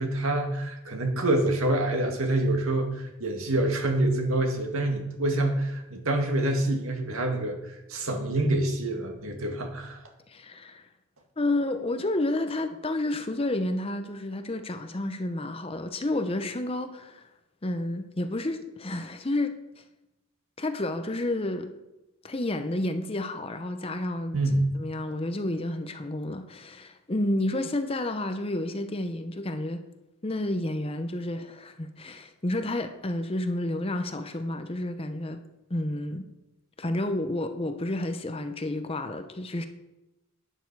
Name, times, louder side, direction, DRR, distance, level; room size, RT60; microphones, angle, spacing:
voice 1, 0.0-10.0 24.3-24.8, right 1 dB, 75° right, 3 dB, 2.0 m, -26 dB
voice 2, 10.3-10.9 11.4-17.3 17.6-19.8 20.6-21.8 22.2-24.4 24.7-29.8 30.2-35.4 35.7-36.2 36.8-39.7, left 1 dB, 25° left, 8 dB, 0.7 m, -30 dB
11.0 x 9.4 x 4.7 m, 0.96 s
head